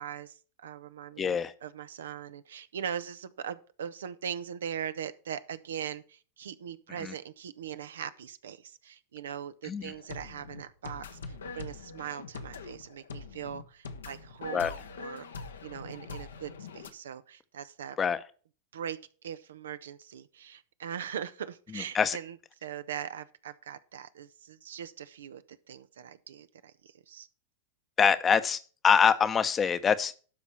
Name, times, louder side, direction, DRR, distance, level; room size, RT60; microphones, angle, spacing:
voice 1, 0.0-18.0 18.7-22.4 22.6-27.3, right 9 dB, 75° right, 0.7 m, -41 dB
voice 2, 1.2-1.5 7.0-7.1 9.7-9.9 14.5-14.7 18.0-18.2 21.7-22.2 28.0-30.1, left 7 dB, 25° left, 0.8 m, -25 dB
sound 1, 9.8-16.9, left 4 dB, 80° left, 1.0 m, -43 dB
12.0 x 4.2 x 7.0 m
hypercardioid pair, 95°, 0 cm